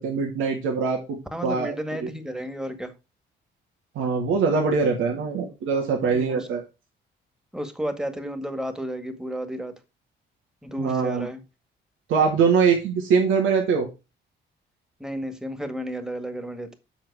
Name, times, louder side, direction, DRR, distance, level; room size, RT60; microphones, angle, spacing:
voice 1, 0.0-1.7 2.0-2.1 3.9-6.6 10.8-11.3 12.1-13.9, right 5 dB, 85° right, 1 dB, 2.4 m, -23 dB
voice 2, 1.3-2.9 6.0-6.5 7.5-9.7 10.6-11.4 15.0-16.8, equal, 5° right, 8 dB, 1.9 m, -32 dB
8.0 x 6.1 x 4.8 m, 0.27 s
cardioid pair, 90°, 20 cm